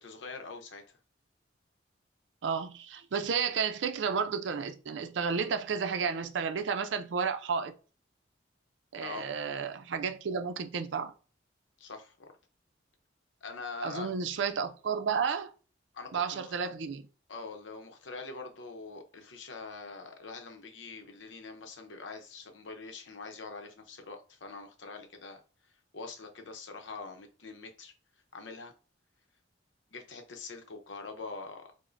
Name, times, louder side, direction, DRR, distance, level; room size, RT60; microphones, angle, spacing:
voice 1, 0.0-0.8 9.0-9.3 11.8-12.3 13.4-14.1 15.9-16.5 17.3-25.4 25.9-27.9 28.3-28.7 29.9-31.7, left 4 dB, 80° left, 0.7 m, -44 dB
voice 2, 2.4-7.7 8.9-11.1 13.8-15.5 16.1-17.1, right 6 dB, 80° right, 0.4 m, -32 dB
4.9 x 2.1 x 2.5 m
head